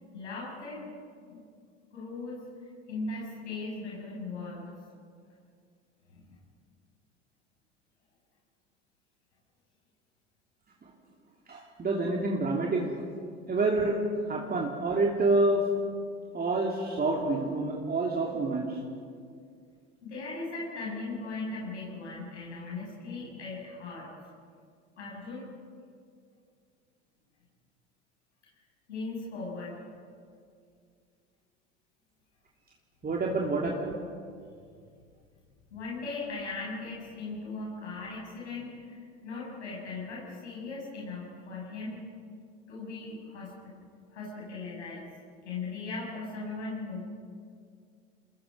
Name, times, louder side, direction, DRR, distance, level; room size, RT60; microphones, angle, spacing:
voice 1, 0.1-0.8 1.3-1.4 1.9-2.4 2.9-4.6 6.1-6.4 13.4-13.5 20.0-24.1 25.0-25.5 28.9-29.8 33.3-33.4 35.7-42.0 42.7-43.5 44.1-45.1 45.4-47.0, left 3 dB, 80° left, -5 dB, 7.9 m, -38 dB
voice 2, 11.5-12.9 13.5-14.0 14.3-15.6 16.3-18.8 33.0-34.0, right 2 dB, 25° right, -1 dB, 3.0 m, -27 dB
29.5 x 20.5 x 5.5 m, 2.2 s
hypercardioid pair, 70°, 34 cm